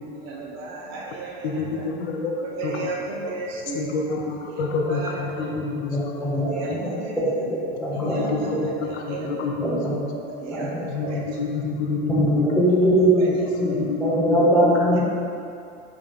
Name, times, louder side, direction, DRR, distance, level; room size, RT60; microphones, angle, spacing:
voice 1, 0.1-1.8 2.4-3.9 4.9-5.5 6.3-7.2 7.9-8.5 8.8-9.3 10.3-10.7 11.0-11.2 13.2-13.9, right 3 dB, 50° right, -2 dB, 0.7 m, -34 dB
voice 2, 1.4-2.3 2.6-2.9 3.7-6.0 6.6-6.8 8.0-10.1 10.9-12.5 13.6-14.4 14.7-14.8, left 4 dB, 85° left, 1 dB, 0.5 m, -28 dB
voice 3, 5.5-8.6 9.2-9.3 9.8-9.9 10.5-10.7 12.2-13.7 14.0-15.0, equal, 5° left, -9 dB, 1.3 m, -22 dB
3.6 x 3.6 x 2.3 m, 2.5 s
hypercardioid pair, 75°, 33 cm